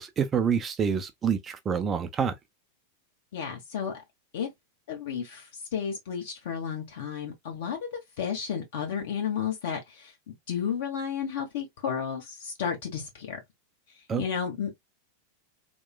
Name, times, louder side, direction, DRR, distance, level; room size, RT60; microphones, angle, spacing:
voice 1, 0.0-2.3 14.1-14.2, right 7 dB, 25° right, 0.4 m, -27 dB
voice 2, 3.3-3.9 4.3-4.5 4.9-5.4 5.7-7.8 8.2-13.4 14.2-14.7, left 7 dB, 55° left, 1.1 m, -32 dB
2.9 x 2.1 x 2.3 m
figure-of-eight pair, 90°, 0 cm